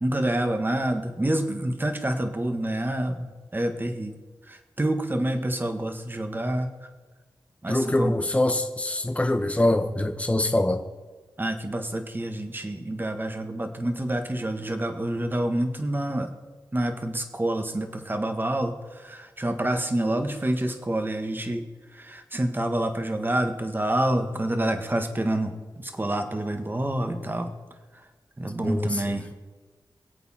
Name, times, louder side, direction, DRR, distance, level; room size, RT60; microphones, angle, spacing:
voice 1, 0.0-4.2 4.5-6.7 7.6-8.1 11.4-16.3 16.7-21.6 21.9-27.5 28.4-29.2, right 1 dB, 25° right, 6 dB, 1.6 m, -27 dB
voice 2, 7.7-10.8 28.6-29.0, left 1 dB, 15° left, 6 dB, 1.0 m, -24 dB
24.0 x 8.5 x 4.3 m, 1.3 s
wide cardioid pair, 85°, 8 cm